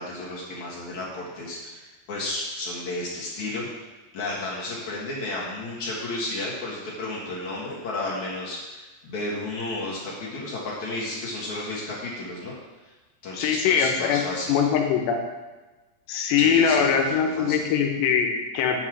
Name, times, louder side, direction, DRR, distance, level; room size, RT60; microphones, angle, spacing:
voice 1, 0.0-3.7 4.1-8.8 9.0-12.6 13.2-14.5 16.4-17.6, left 2 dB, 55° left, -5 dB, 2.4 m, -32 dB
voice 2, 13.3-14.2 14.5-15.2 16.1-18.8, left 7 dB, 80° left, 3 dB, 3.2 m, -22 dB
8.9 x 5.4 x 6.2 m, 1.2 s
omnidirectional pair, 5.0 m